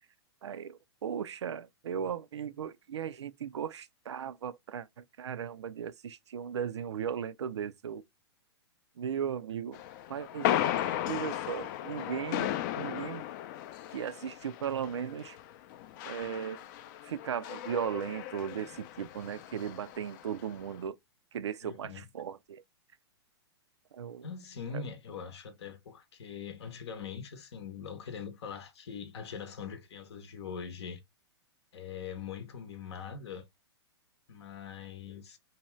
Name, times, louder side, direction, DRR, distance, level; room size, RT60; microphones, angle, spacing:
voice 1, 0.4-8.0 9.0-9.8 10.1-10.6 11.1-13.3 13.9-15.4 16.1-16.6 17.0-21.0 21.3-22.6 23.9-24.3 24.7-24.9, right 8 dB, 90° right, 0.4 m, -37 dB
sound 1, 9.7-20.7, left 12 dB, 45° left, 0.4 m, -36 dB
voice 2, 10.7-11.1 21.6-22.0 24.2-31.0 31.7-33.5 34.3-35.4, left 6 dB, 70° left, 0.7 m, -42 dB
2.7 x 2.2 x 3.0 m
hypercardioid pair, 125°, 14 cm